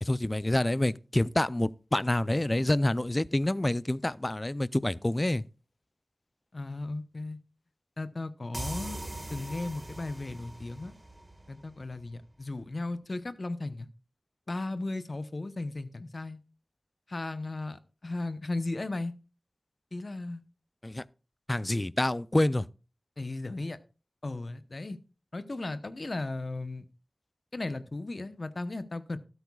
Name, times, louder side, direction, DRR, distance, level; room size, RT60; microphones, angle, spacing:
voice 1, 0.0-5.4 20.8-21.0 21.5-22.7, left 1 dB, 25° left, 0.4 m, -27 dB
voice 2, 6.5-7.4 8.0-9.0 9.3-10.9 11.5-13.9 14.5-16.4 17.1-19.1 19.9-20.4 23.2-23.8 24.2-25.0 25.3-26.9 27.5-29.2, left 2 dB, 55° left, 0.8 m, -36 dB
sound 1, 8.5-12.1, right 1 dB, 25° right, 1.7 m, -41 dB
13.0 x 12.5 x 2.3 m
wide cardioid pair, 55°, 0 cm